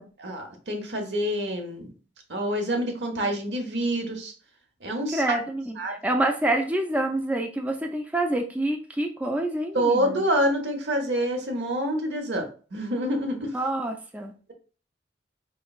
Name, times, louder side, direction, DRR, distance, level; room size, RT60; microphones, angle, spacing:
voice 1, 0.2-1.9 2.3-4.3 4.8-5.4 5.8-5.9 9.7-13.5, equal, 80° right, 4 dB, 0.9 m, -27 dB
voice 2, 5.1-10.2 13.5-14.3, right 1 dB, 10° right, 3 dB, 0.3 m, -27 dB
4.3 x 3.1 x 2.3 m, 0.38 s
head